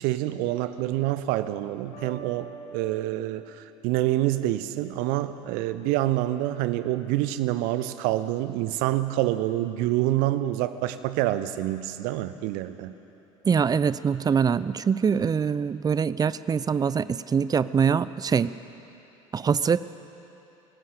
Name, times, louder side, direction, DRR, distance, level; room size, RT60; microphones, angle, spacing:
voice 1, 0.0-12.9, right 14 dB, 55° right, 13 dB, 0.9 m, -27 dB
sound 1, 1.9-4.8, right 4 dB, 55° left, 3.3 m, -46 dB
voice 2, 13.5-18.5 19.3-19.9, right 6 dB, 20° right, 16 dB, 0.6 m, -24 dB
23.0 x 17.0 x 6.9 m, 2.9 s
figure-of-eight pair, 60°, 17 cm